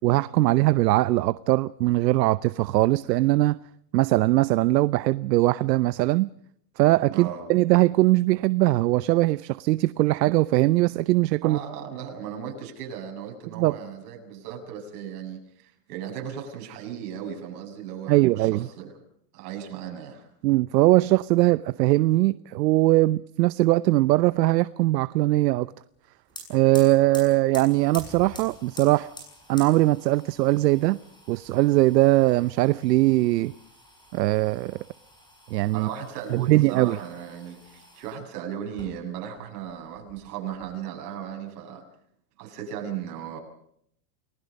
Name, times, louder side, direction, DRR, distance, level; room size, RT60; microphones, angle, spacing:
voice 1, 0.0-3.6 3.9-6.3 6.8-11.6 13.5-13.7 18.1-18.7 20.4-25.7 26.5-29.1 29.5-31.0 31.3-33.5 34.1-34.8 35.5-35.9 36.3-37.0, right 18 dB, 85° right, 0.8 m, -21 dB
voice 2, 7.1-7.5 11.4-18.9 19.3-20.3 35.7-41.8 42.4-43.4, right 8 dB, 65° right, 7.5 m, -36 dB
sound 1, 26.0-26.1 26.3-38.2 38.7-39.4 39.7-40.7, left 1 dB, 10° left, 7.8 m, -48 dB
29.5 x 20.0 x 5.3 m
supercardioid pair, 150°, 48 cm